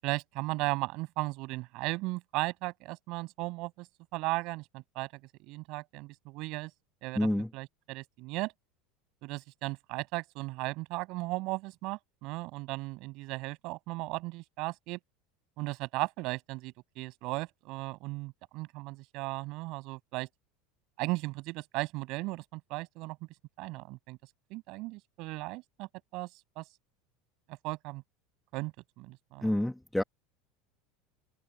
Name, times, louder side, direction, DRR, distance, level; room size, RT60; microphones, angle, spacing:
voice 1, 0.0-3.9 4.1-5.1 5.5-6.7 7.0-7.3 7.5-8.5 9.2-15.0 15.6-20.3 21.0-23.2 23.6-24.2 24.5-26.3 26.6-26.7 27.5-28.0 28.5-29.5, right 22 dB, 60° right, 7.4 m, -36 dB
voice 2, 7.1-7.5 29.4-30.0, left 1 dB, 5° left, 1.5 m, -28 dB
supercardioid pair, 115°, 0 cm